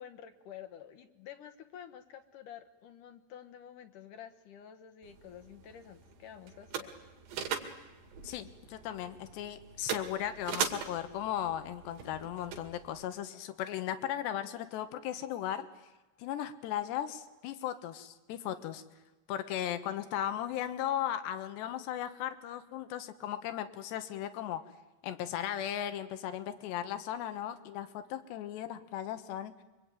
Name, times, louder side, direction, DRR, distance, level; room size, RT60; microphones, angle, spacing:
voice 1, 0.0-7.0, left 9 dB, 65° left, 7 dB, 2.2 m, -50 dB
sound 1, 5.0-13.0, right 7 dB, 90° right, 4.5 m, -41 dB
voice 2, 8.2-15.7 16.2-18.8 19.3-24.6 25.0-29.5, left 11 dB, 90° left, 11 dB, 3.5 m, -36 dB
27.5 x 23.5 x 9.2 m, 1.1 s
omnidirectional pair, 4.8 m